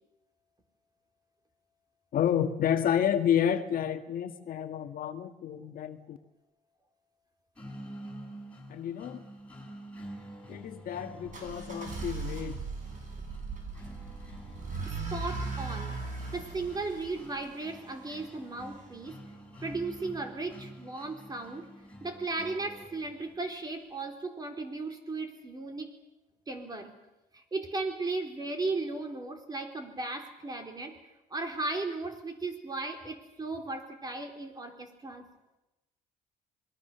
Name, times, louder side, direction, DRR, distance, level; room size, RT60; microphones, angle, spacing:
voice 1, 2.1-6.2 8.7-9.3 10.5-12.6, left 9 dB, 55° left, 1.6 m, -30 dB
sound 1, 7.6-23.5, equal, 5° left, 7.3 m, -48 dB
sound 2, 11.3-18.2, right 4 dB, 50° right, 7.7 m, -38 dB
voice 2, 15.1-16.0 16.3-19.2 19.6-21.7 22.0-25.9 26.5-26.9 27.3-31.0 31.3-35.3, right 3 dB, 25° right, 4.0 m, -36 dB
27.0 x 21.0 x 6.8 m
cardioid pair, 110°, 17 cm